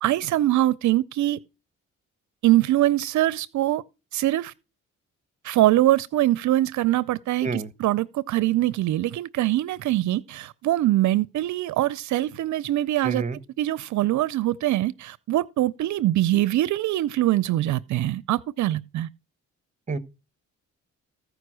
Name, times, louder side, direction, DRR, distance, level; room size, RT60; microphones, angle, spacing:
voice 1, 0.0-1.4 2.4-3.8 4.1-4.5 5.4-13.2 13.6-19.1, right 15 dB, 70° right, 0.5 m, -23 dB
voice 2, 13.0-13.4 19.9-20.0, right 4 dB, 25° right, 1.2 m, -28 dB
15.0 x 5.1 x 6.2 m
cardioid pair, 90°, 30 cm